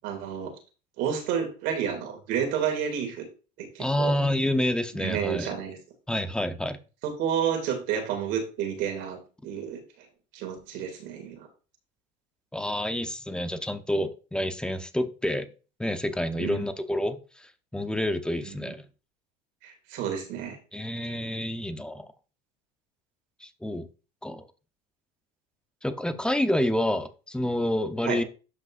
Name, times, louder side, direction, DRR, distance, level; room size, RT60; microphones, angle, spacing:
voice 1, 0.0-0.5 1.0-3.3 3.6-4.2 4.9-5.8 7.0-9.2 9.4-9.8 10.3-11.5 16.4-16.6 18.5-18.8 19.6-20.6 28.1-28.2, right 8 dB, 65° right, 2.7 m, -30 dB
voice 2, 3.8-5.5 6.1-6.8 12.5-15.5 15.8-18.8 20.7-22.1 23.4-23.9 24.2-24.4 25.8-28.2, left 1 dB, 5° left, 0.8 m, -28 dB
12.0 x 5.4 x 2.6 m
supercardioid pair, 115°, 20 cm